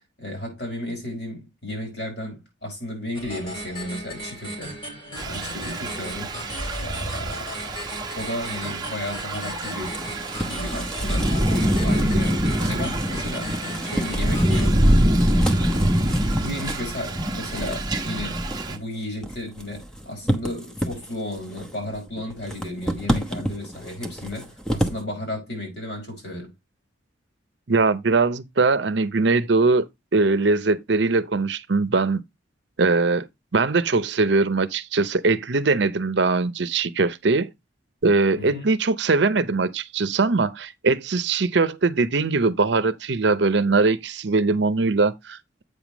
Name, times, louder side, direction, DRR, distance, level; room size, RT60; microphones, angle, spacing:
voice 1, 0.2-4.7 5.2-6.3 6.7-7.4 8.1-10.0 10.4-11.3 11.8-13.6 13.8-14.8 15.3-15.9 16.4-26.5 38.4-38.7, left 1 dB, 60° left, 5.4 m, -34 dB
sound 1, 3.1-14.7, equal, 25° left, 2.7 m, -36 dB
Thunder / Rain, 5.2-18.8, equal, 20° right, 1.0 m, -24 dB
sound 2, 9.6-25.0, equal, 5° left, 0.9 m, -32 dB
voice 2, 27.7-29.9 30.1-32.2 32.8-33.3 33.5-37.5 38.0-45.6, right 3 dB, 70° right, 0.7 m, -21 dB
8.1 x 3.6 x 6.0 m
head